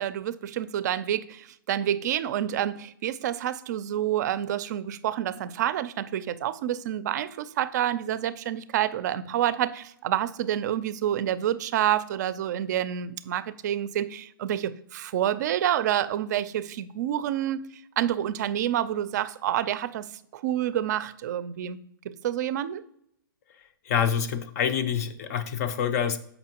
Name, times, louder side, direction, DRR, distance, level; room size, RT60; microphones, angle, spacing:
voice 1, 0.0-17.7 18.0-20.1 20.3-22.8, right 11 dB, 50° right, 0.4 m, -28 dB
voice 2, 23.9-26.2, left 8 dB, 45° left, 0.5 m, -26 dB
6.9 x 5.3 x 2.9 m
hypercardioid pair, 150°, 12 cm